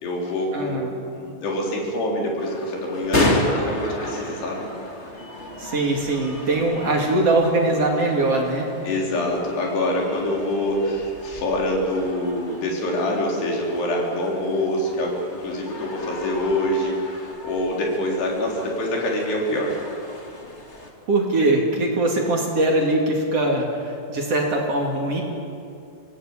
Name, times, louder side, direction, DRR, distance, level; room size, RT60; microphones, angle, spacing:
voice 1, 0.0-0.8 1.1-4.7 8.9-19.8, left 1 dB, 70° left, -1 dB, 5.8 m, -25 dB
voice 2, 0.5-1.0 5.6-8.7 21.1-25.2, right 2 dB, 40° right, 0 dB, 2.8 m, -22 dB
sound 1, 2.4-20.9, left 1 dB, 25° left, 1.6 m, -32 dB
24.5 x 17.5 x 8.7 m, 2.6 s
omnidirectional pair, 5.0 m